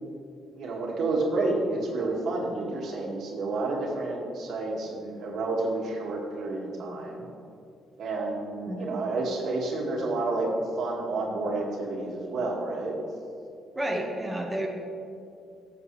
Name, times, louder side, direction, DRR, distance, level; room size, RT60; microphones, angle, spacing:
voice 1, 0.5-7.2 8.0-10.5 10.8-13.0, right 2 dB, 70° right, -1 dB, 2.1 m, -30 dB
voice 2, 13.7-14.7, right 1 dB, 15° right, -1 dB, 1.5 m, -30 dB
15.0 x 7.2 x 3.3 m, 2.5 s
cardioid pair, 90°, 0 cm